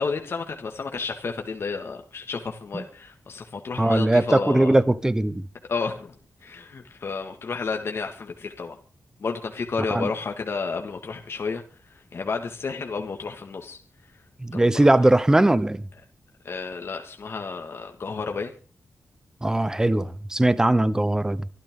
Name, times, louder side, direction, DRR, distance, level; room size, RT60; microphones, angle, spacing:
voice 1, 0.0-4.8 5.7-6.1 6.4-8.8 9.2-11.6 11.9-13.8 14.5-14.9 16.4-18.5, left 4 dB, 55° left, 1.9 m, -31 dB
voice 2, 3.8-5.5 9.9-10.1 14.4-15.8 19.4-21.4, right 1 dB, 10° right, 0.9 m, -20 dB
24.5 x 12.5 x 3.8 m
wide cardioid pair, 140°, 5 cm